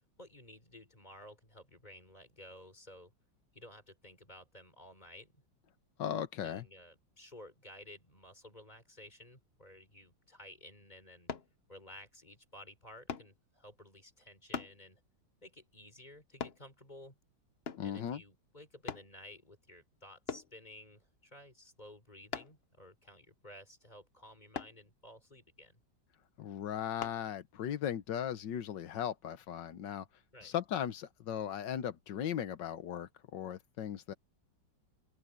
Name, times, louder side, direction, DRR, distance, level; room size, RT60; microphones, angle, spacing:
voice 1, 0.2-3.1 3.5-5.4 6.4-11.3 11.7-15.0 15.4-17.2 17.8-25.8 30.3-30.6, left 1 dB, 20° left, 4.1 m, -54 dB
voice 2, 6.0-6.6 17.8-18.2 26.4-30.1 30.4-34.1, left 9 dB, 70° left, 1.7 m, -37 dB
sound 1, 11.3-11.5 13.1-13.3 14.5-14.8 16.4-16.6 17.6-17.9 18.9-19.1 20.3-20.5 22.3-22.6 24.5-24.8 27.0-27.2 27.8-27.9, left 6 dB, 45° left, 0.8 m, -40 dB
open air
omnidirectional pair, 2.0 m